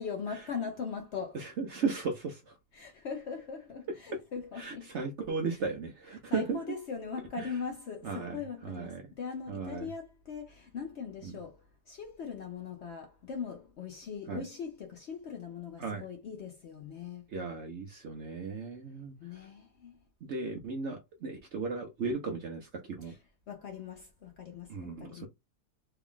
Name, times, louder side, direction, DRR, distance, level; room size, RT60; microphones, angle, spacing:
voice 1, 0.0-1.4 2.7-4.9 6.3-11.6 11.9-17.2 19.2-20.0 23.0-23.2 23.5-25.3, left 6 dB, 75° left, 0.6 m, -40 dB
voice 2, 1.3-2.4 4.1-4.2 4.6-6.6 7.4-7.5 8.0-9.0 9.5-9.9 11.2-11.3 14.3-14.4 15.8-16.0 17.3-19.1 20.3-23.1 24.7-25.3, right 4 dB, 65° right, 0.7 m, -36 dB
3.4 x 2.3 x 3.6 m
omnidirectional pair, 1.8 m